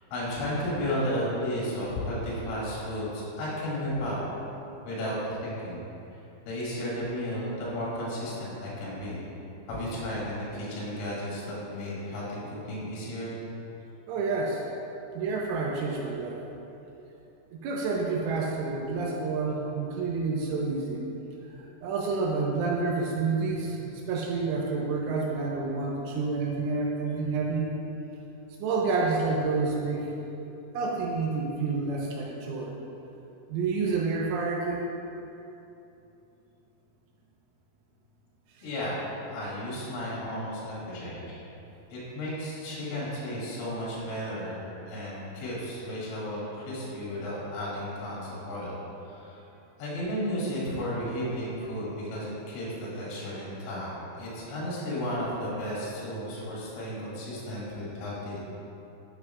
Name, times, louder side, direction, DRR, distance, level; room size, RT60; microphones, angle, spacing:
voice 1, 0.1-4.2 4.9-5.8 6.5-9.3 9.7-13.4 38.6-38.9 39.3-41.4 41.9-48.8 49.1-49.4 49.8-58.4, equal, 75° left, -7 dB, 4.5 m, -33 dB
voice 2, 14.1-14.6 15.2-16.4 17.5-21.1 21.6-27.7 28.6-30.1 30.7-32.7 33.5-34.9 38.6-38.7 42.9-43.0, right 4 dB, 80° right, -2 dB, 3.1 m, -29 dB
12.0 x 7.5 x 2.4 m, 2.9 s
omnidirectional pair, 5.9 m